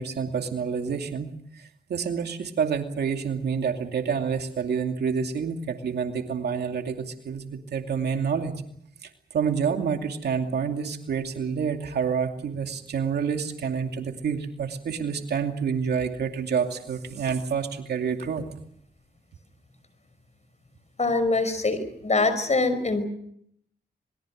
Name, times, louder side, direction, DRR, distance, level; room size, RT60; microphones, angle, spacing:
voice 1, 0.0-8.5 9.0-18.5, right 6 dB, 90° right, 5 dB, 2.6 m, -28 dB
voice 2, 21.0-23.0, left 3 dB, 45° left, 12 dB, 5.2 m, -24 dB
26.5 x 22.0 x 6.5 m, 0.69 s
cardioid pair, 60°, 17 cm